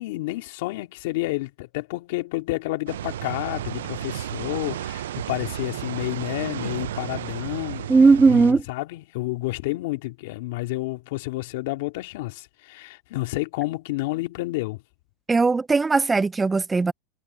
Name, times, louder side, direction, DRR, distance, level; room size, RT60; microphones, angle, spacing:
voice 1, 0.0-7.9 8.3-14.8, left 20 dB, 70° left, 2.3 m, -30 dB
sound 1, 2.9-8.5, right 11 dB, 85° right, 0.4 m, -33 dB
voice 2, 7.9-8.6 15.3-16.9, right 4 dB, 15° right, 0.3 m, -18 dB
supercardioid pair, 110°, 0 cm